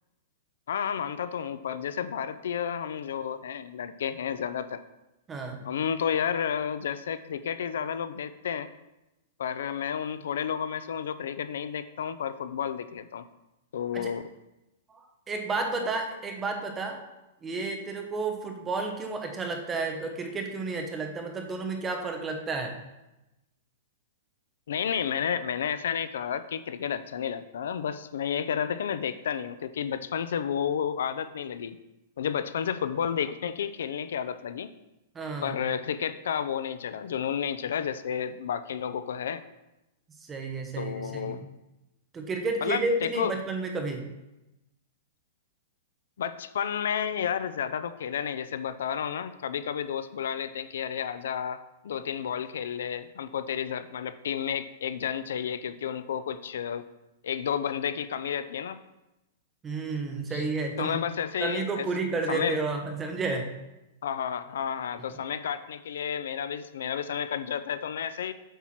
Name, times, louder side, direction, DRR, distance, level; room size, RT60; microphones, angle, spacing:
voice 1, 0.7-4.8 5.6-8.7 9.4-13.3 13.7-14.2 24.7-31.8 32.2-34.7 35.4-39.4 40.8-41.4 42.6-43.3 46.2-56.8 57.2-58.8 60.3-60.4 60.8-61.9 62.3-62.6 64.0-68.3, left 8 dB, 75° left, 13 dB, 0.5 m, -31 dB
voice 2, 5.3-5.7 13.9-14.1 14.9-15.0 15.3-17.0 17.4-22.7 35.1-35.6 40.2-41.5 42.1-44.0 59.6-61.0 61.4-63.5, right 3 dB, 10° right, 3 dB, 0.9 m, -31 dB
8.1 x 4.6 x 5.8 m, 0.96 s
supercardioid pair, 175°, 0 cm